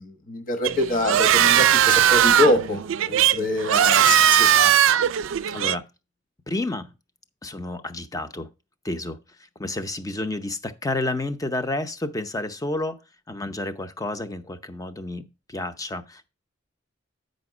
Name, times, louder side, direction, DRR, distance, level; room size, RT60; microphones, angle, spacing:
voice 1, 0.0-4.7, left 2 dB, 45° left, 1.2 m, -25 dB
sound 1, 0.6-5.8, right 10 dB, 85° right, 0.4 m, -19 dB
voice 2, 5.5-5.9 6.5-6.9 7.4-8.5 8.8-9.2 9.6-13.0 13.3-16.3, left 2 dB, 20° left, 0.6 m, -30 dB
8.8 x 5.2 x 4.9 m
head